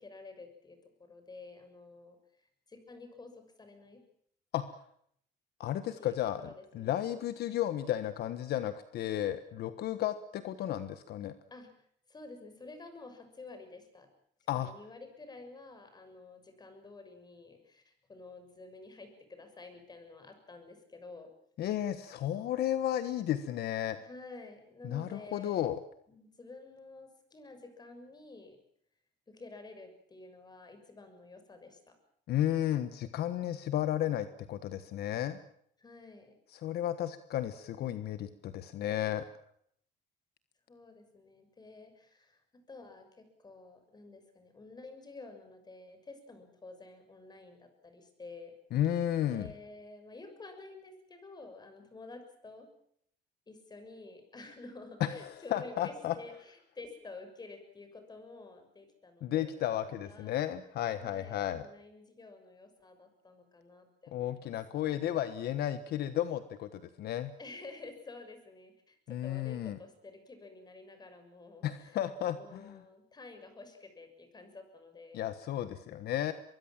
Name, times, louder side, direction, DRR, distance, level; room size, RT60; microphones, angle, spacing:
voice 1, 0.0-4.0 6.0-7.0 11.5-14.1 14.5-21.3 24.0-25.7 26.1-28.6 29.3-32.0 35.8-36.4 40.7-48.5 49.3-52.7 53.5-60.3 61.0-64.5 67.4-72.0 72.3-75.2, left 3 dB, 25° left, 7 dB, 6.7 m, -50 dB
voice 2, 5.6-11.3 14.5-14.7 21.6-24.0 24.8-25.8 32.3-35.4 36.6-39.2 48.7-49.5 55.0-56.1 59.2-61.6 64.1-67.3 69.1-69.8 71.6-72.8 75.1-76.3, left 11 dB, 70° left, 11 dB, 1.4 m, -33 dB
23.5 x 22.5 x 7.5 m, 0.68 s
cardioid pair, 110°, 17 cm